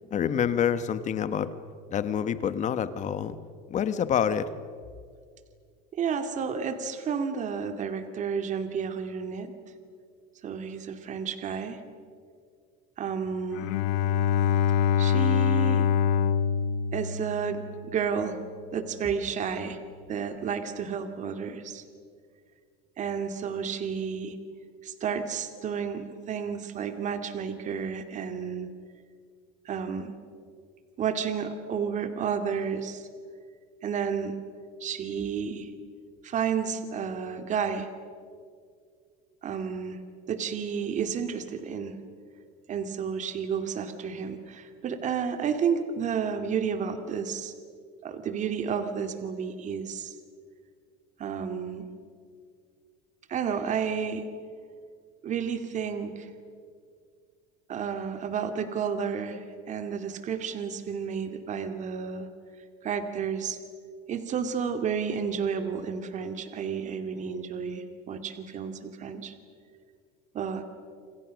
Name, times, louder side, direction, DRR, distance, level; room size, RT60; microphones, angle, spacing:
voice 1, 0.1-1.5 1.9-3.4 3.7-4.5, left 8 dB, 35° left, 12 dB, 1.3 m, -27 dB
voice 2, 5.9-9.5 10.4-11.8 13.0-13.7 15.0-15.9 16.9-18.4 18.7-19.8 20.1-21.8 23.0-24.4 24.8-28.7 29.7-30.2 31.0-33.1 33.8-34.4 34.8-35.7 36.2-37.9 39.4-40.0 40.3-41.9 42.7-47.5 48.0-50.1 51.2-51.8 53.3-54.3 55.2-56.3 57.7-62.3 62.8-63.6 64.1-69.3 70.3-70.6, right 6 dB, 35° right, 7 dB, 2.4 m, -31 dB
Bowed string instrument, 13.5-17.8, left 8 dB, 85° left, 1.4 m, -25 dB
28.5 x 27.5 x 6.5 m, 2.1 s
cardioid pair, 130°, 20 cm